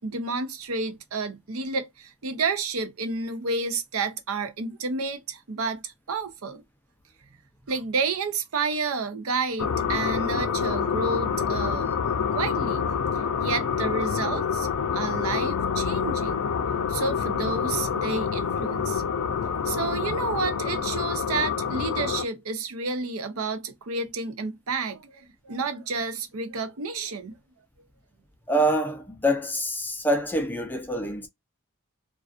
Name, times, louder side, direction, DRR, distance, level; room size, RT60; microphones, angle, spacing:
voice 1, 0.0-6.6 7.7-12.9 13.4-14.7 14.9-16.4 16.9-19.0 19.6-27.4, right 4 dB, 70° right, 0.6 m, -30 dB
sound 1, 9.6-22.3, left 6 dB, 85° left, 0.5 m, -27 dB
voice 2, 28.5-31.3, equal, 10° left, 0.4 m, -25 dB
2.3 x 2.3 x 2.3 m
head